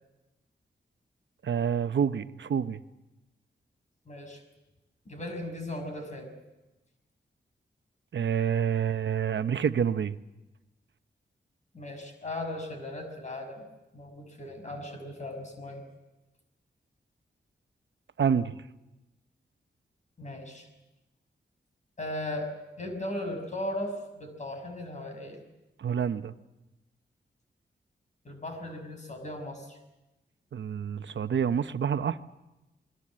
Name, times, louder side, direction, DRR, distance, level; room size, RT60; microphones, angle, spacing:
voice 1, 1.4-2.8 8.1-10.2 18.2-18.6 25.8-26.3 30.5-32.2, right 7 dB, 80° right, 11 dB, 0.9 m, -27 dB
voice 2, 4.1-4.4 5.1-6.3 11.7-13.7 13.9-15.8 20.2-20.7 22.0-22.5 22.8-25.4 28.2-29.8, left 1 dB, 40° left, 5 dB, 6.0 m, -37 dB
29.0 x 21.5 x 7.5 m, 1.0 s
wide cardioid pair, 155°, 19 cm